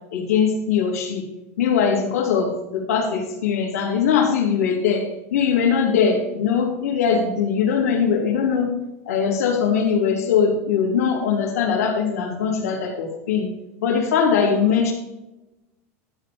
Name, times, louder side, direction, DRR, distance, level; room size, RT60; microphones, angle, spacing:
voice 1, 0.1-1.2 1.6-5.1 5.3-8.7 9.1-13.5 13.8-14.9, left 6 dB, 85° left, 1 dB, 3.0 m, -21 dB
12.5 x 5.5 x 5.2 m, 0.97 s
supercardioid pair, 120°, 8 cm